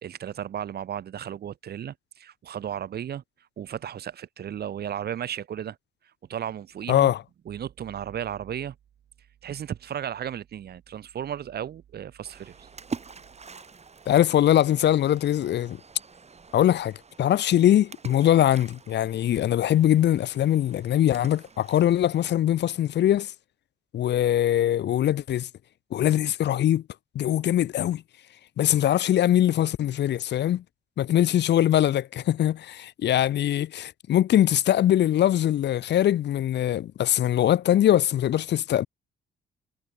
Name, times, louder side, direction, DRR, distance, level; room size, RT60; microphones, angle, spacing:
voice 1, 0.0-3.2 3.6-5.8 6.3-7.1 7.5-8.7 9.4-12.7, right 9 dB, 55° right, 0.9 m, -34 dB
voice 2, 6.9-7.2 14.1-15.8 16.5-23.3 23.9-25.5 25.9-26.8 27.1-28.0 28.6-30.6 31.0-38.9, left 11 dB, 60° left, 0.7 m, -22 dB
Splash splatter, 12.2-22.2, right 5 dB, 35° right, 5.0 m, -45 dB
cardioid pair, 90°, 20 cm